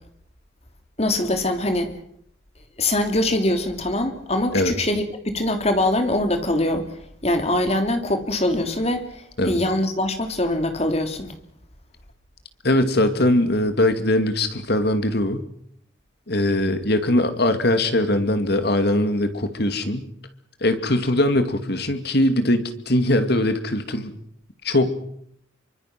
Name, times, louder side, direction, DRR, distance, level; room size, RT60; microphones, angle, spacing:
voice 1, 1.0-1.9 2.8-7.0 7.2-11.3, left 1 dB, 35° left, 2.9 m, -23 dB
voice 2, 12.6-15.5 16.3-20.1 20.6-24.2 24.6-24.9, left 1 dB, 55° left, 2.4 m, -21 dB
27.0 x 24.5 x 6.1 m
head